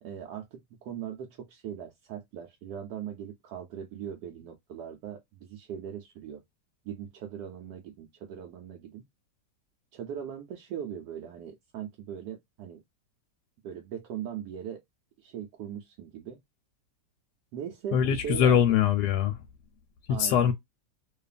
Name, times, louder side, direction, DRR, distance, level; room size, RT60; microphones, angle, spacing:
voice 1, 0.0-6.4 6.8-9.0 9.9-12.8 13.6-14.8 15.2-16.4 17.5-18.6 20.1-20.5, right 9 dB, 75° right, 1.1 m, -39 dB
voice 2, 17.9-19.4 20.1-20.5, left 9 dB, 75° left, 1.1 m, -23 dB
2.7 x 2.4 x 2.3 m
omnidirectional pair, 1.9 m